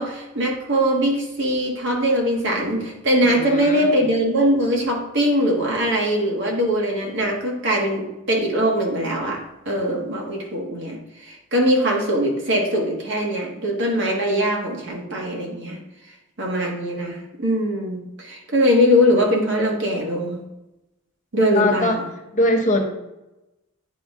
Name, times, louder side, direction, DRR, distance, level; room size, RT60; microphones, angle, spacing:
voice 1, 0.0-15.8 16.4-20.4 21.3-22.1, equal, 55° right, 0 dB, 1.5 m, -21 dB
voice 2, 3.2-3.9 21.6-22.0 22.3-22.9, left 1 dB, 35° left, 2 dB, 0.8 m, -21 dB
9.4 x 3.9 x 3.7 m, 0.95 s
head